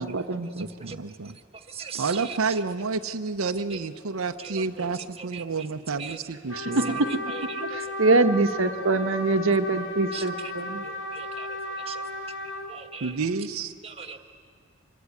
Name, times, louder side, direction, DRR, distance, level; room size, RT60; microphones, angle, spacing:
voice 1, 0.0-0.7 6.5-7.1 7.4-10.9, right 3 dB, 70° right, 7 dB, 1.0 m, -24 dB
voice 2, 0.6-1.4 2.0-6.9 13.0-13.7, right 4 dB, 85° right, 6 dB, 0.8 m, -30 dB
voice 3, 1.7-2.0 5.3-5.4 6.0-6.2 10.1-10.2 11.1-11.5 11.9-12.0 12.7-13.1 13.8-14.2, right 7 dB, 30° right, 6 dB, 1.4 m, -38 dB
Trumpet, 6.5-12.7, left 1 dB, 80° left, 3.0 m, -34 dB
25.0 x 21.5 x 9.7 m, 2.1 s
head